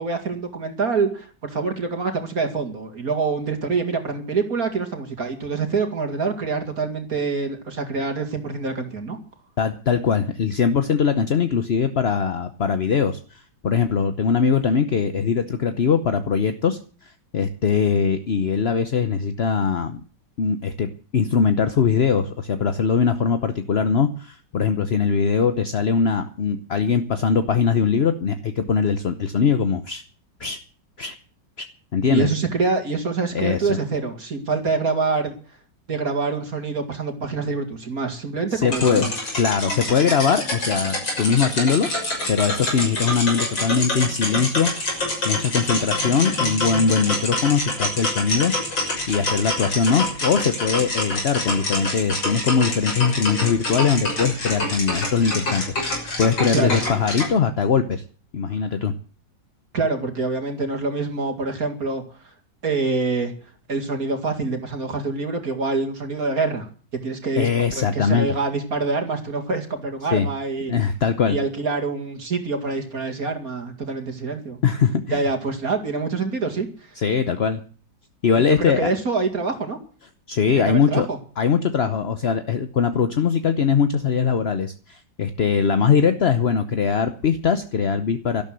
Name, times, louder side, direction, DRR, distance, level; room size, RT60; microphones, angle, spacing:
voice 1, 0.0-9.2 32.1-35.3 35.9-39.1 56.5-56.8 59.7-62.0 62.6-63.3 63.7-66.7 67.0-70.7 71.3-74.6 75.1-76.7 78.5-79.8 80.5-81.2, right 4 dB, 50° right, 4 dB, 2.6 m, -25 dB
voice 2, 9.6-20.0 20.4-30.0 30.4-30.6 31.0-31.2 31.6-31.7 31.9-32.3 33.3-33.8 38.5-39.1 39.4-41.9 42.3-44.7 45.2-48.5 49.1-58.0 58.3-58.9 67.4-68.4 70.1-70.3 70.7-71.4 74.6-75.2 77.0-77.6 78.2-78.9 80.3-81.1 81.4-88.4, left 6 dB, 45° left, 10 dB, 0.9 m, -21 dB
sound 1, 38.7-57.3, left 1 dB, 80° left, 7.0 m, -26 dB
12.5 x 12.0 x 7.7 m, 0.41 s
omnidirectional pair, 2.1 m